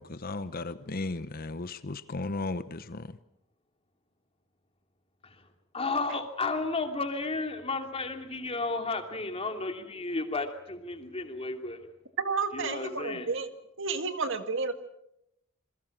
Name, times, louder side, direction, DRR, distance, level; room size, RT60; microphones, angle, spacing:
voice 1, 0.0-3.2, left 2 dB, 45° left, 13 dB, 0.9 m, -35 dB
voice 2, 5.7-11.8 12.5-13.3, left 3 dB, 30° left, 5 dB, 2.8 m, -33 dB
voice 3, 12.2-13.5 13.8-14.7, right 4 dB, 65° right, 8 dB, 1.9 m, -31 dB
27.5 x 22.0 x 6.1 m, 0.80 s
head